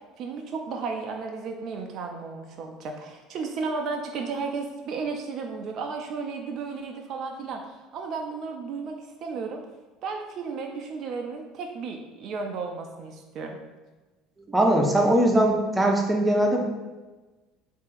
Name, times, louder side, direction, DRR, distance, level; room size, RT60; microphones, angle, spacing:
voice 1, 0.2-9.6 10.0-13.6, right 4 dB, 50° right, 3 dB, 0.4 m, -34 dB
voice 2, 14.4-16.6, right 1 dB, 10° right, 0 dB, 0.8 m, -21 dB
3.6 x 2.7 x 4.2 m, 1.2 s
figure-of-eight pair, 65°, 0 cm